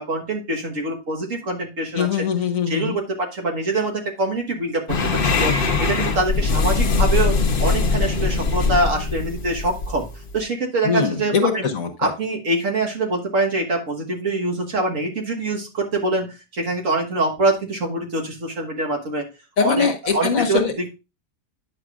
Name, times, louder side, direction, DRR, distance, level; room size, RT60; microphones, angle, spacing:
voice 1, 0.0-2.3 2.7-4.8 5.2-5.5 5.8-7.3 7.6-10.1 10.3-11.6 12.0-19.3 19.6-20.9, right 2 dB, 50° right, 1 dB, 1.7 m, -24 dB
voice 2, 1.9-3.0 10.8-12.1 19.6-20.7, left 6 dB, 60° left, 3 dB, 1.4 m, -22 dB
sound 1, 4.9-10.4, left 4 dB, 40° left, 0.9 m, -21 dB
9.6 x 6.6 x 2.4 m, 0.28 s
omnidirectional pair, 1.7 m